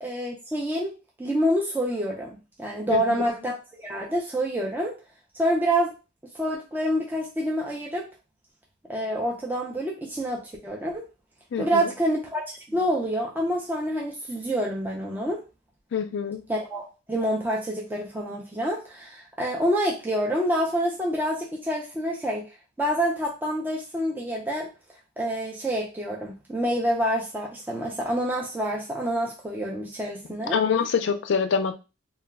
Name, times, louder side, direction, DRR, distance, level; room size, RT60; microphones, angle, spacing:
voice 1, 0.0-0.9 1.2-2.3 2.6-4.9 5.4-5.9 6.3-8.1 8.9-11.0 11.6-15.4 16.5-22.4 22.8-24.7 25.2-30.6, equal, 10° right, -3 dB, 0.4 m, -27 dB
voice 2, 11.5-11.9 15.9-16.4 30.5-31.7, left 6 dB, 60° left, 8 dB, 0.4 m, -25 dB
2.2 x 2.1 x 3.4 m, 0.30 s
head